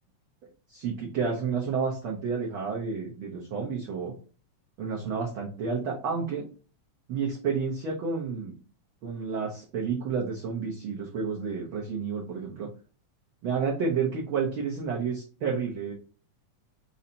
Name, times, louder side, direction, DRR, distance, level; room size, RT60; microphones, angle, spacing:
voice 1, 0.7-4.1 4.8-6.5 7.1-8.6 9.0-12.7 13.4-15.9, right 5 dB, 60° right, -3 dB, 1.4 m, -30 dB
5.5 x 3.2 x 2.8 m, 0.36 s
omnidirectional pair, 3.6 m